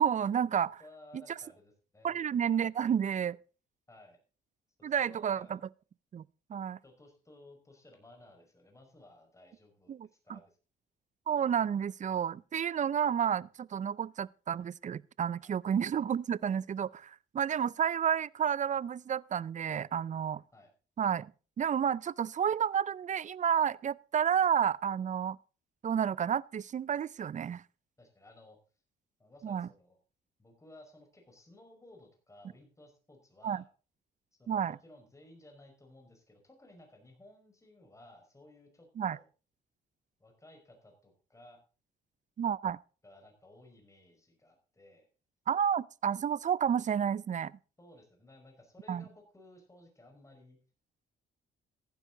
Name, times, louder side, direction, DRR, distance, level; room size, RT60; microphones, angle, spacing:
voice 1, 0.0-0.8 2.0-3.4 4.8-5.6 6.1-6.2 6.5-6.8 9.9-10.4 11.3-20.4 21.0-21.3 21.6-25.4 25.8-27.6 29.4-29.7 33.4-33.6 34.5-34.8 39.0-39.2 42.4-42.8 45.5-47.5 48.9-49.0, right 8 dB, 40° right, 0.5 m, -31 dB
voice 2, 0.8-2.2 3.9-4.2 4.8-5.6 6.8-10.0 10.2-10.6 15.4-15.6 20.5-20.7 28.0-28.6 29.2-30.0 30.4-33.7 34.4-39.3 40.2-41.6 43.0-45.1 47.8-50.6, left 1 dB, 15° left, 5.2 m, -57 dB
15.0 x 11.0 x 3.9 m
cardioid pair, 90°, 20 cm